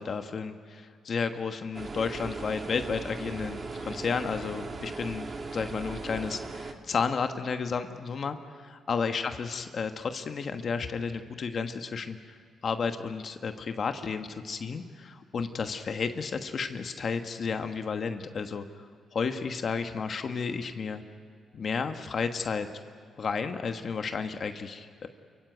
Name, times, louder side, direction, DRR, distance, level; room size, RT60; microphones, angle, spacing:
voice 1, 0.0-5.3 5.5-12.4 12.6-21.0 21.5-22.7 23.2-25.1, left 5 dB, 55° left, 7 dB, 1.2 m, -32 dB
sound 1, 1.7-6.7, right 3 dB, 40° right, 2.0 m, -38 dB
28.0 x 16.0 x 9.4 m, 2.2 s
cardioid pair, 80°, 0 cm